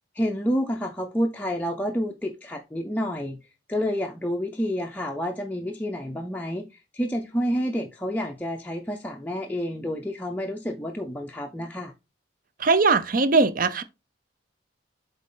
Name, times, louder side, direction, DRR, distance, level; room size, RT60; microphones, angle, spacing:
voice 1, 0.2-3.4 3.7-6.7 6.9-11.9, equal, 10° left, 0.5 m, -29 dB
voice 2, 12.6-13.8, right 4 dB, 45° right, 0.6 m, -20 dB
7.7 x 4.1 x 3.8 m
head